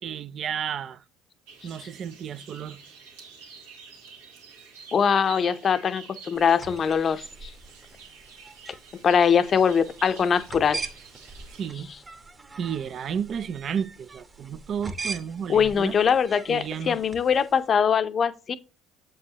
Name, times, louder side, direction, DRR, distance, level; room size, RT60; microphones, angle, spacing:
voice 1, 0.0-1.0 1.6-2.8 11.5-11.9 12.6-16.0 16.5-17.0, right 8 dB, 50° right, 0.5 m, -32 dB
sound 1, 1.5-11.7, right 6 dB, 90° right, 1.6 m, -48 dB
voice 2, 4.9-7.5 9.0-10.8 15.5-18.6, left 7 dB, 40° left, 0.6 m, -22 dB
sound 2, 6.3-17.7, right 3 dB, 30° right, 1.0 m, -42 dB
7.4 x 4.8 x 2.9 m
supercardioid pair, 80°, 0 cm